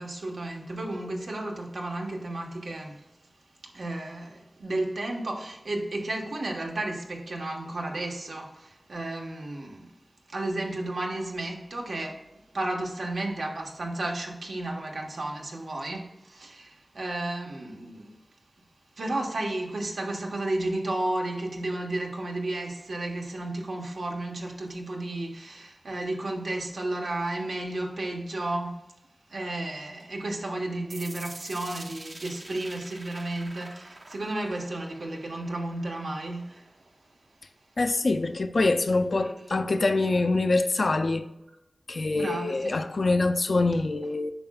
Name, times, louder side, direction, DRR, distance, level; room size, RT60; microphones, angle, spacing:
voice 1, 0.0-2.9 3.7-9.9 10.3-12.2 12.5-18.1 19.0-28.8 29.3-36.6 42.2-42.9, right 2 dB, 90° right, 1.2 m, -33 dB
sound 1, 30.9-36.9, right 2 dB, 65° right, 0.8 m, -46 dB
voice 2, 37.8-41.3 41.9-44.3, left 3 dB, 65° left, 0.4 m, -25 dB
8.8 x 5.7 x 2.3 m
wide cardioid pair, 60°, 0 cm